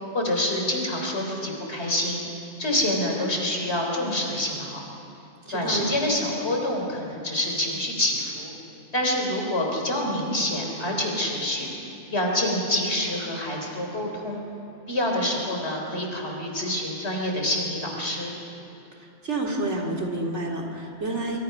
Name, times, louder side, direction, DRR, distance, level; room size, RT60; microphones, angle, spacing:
voice 1, 0.1-2.2 2.6-4.8 5.5-8.5 8.9-11.7 12.1-14.4 14.9-18.3, left 1 dB, 65° left, 0 dB, 4.1 m, -27 dB
voice 2, 5.5-5.9 19.0-21.4, right 2 dB, 75° right, 0 dB, 3.2 m, -29 dB
24.5 x 24.0 x 5.8 m, 2.8 s
omnidirectional pair, 1.2 m